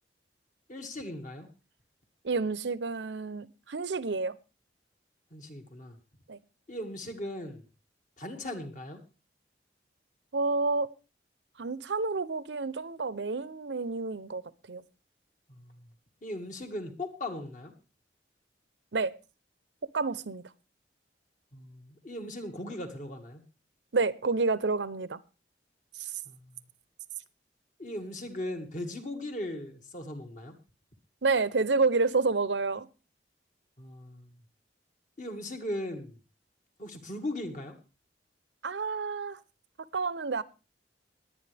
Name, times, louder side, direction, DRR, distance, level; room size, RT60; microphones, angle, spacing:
voice 1, 0.7-1.5 5.3-6.0 6.7-7.6 8.2-9.0 15.5-15.8 16.2-17.7 21.5-23.4 26.3-26.6 27.8-30.6 33.8-34.4 35.2-36.1 36.8-37.8, left 1 dB, 45° left, 2.0 m, -38 dB
voice 2, 2.2-4.4 6.3-6.4 10.3-10.9 11.6-14.4 14.7-14.8 18.9-19.1 19.9-20.4 23.9-25.2 26.0-26.1 31.2-32.9 38.6-39.4 39.9-40.4, right 4 dB, 85° right, 0.8 m, -29 dB
20.5 x 9.1 x 3.4 m
head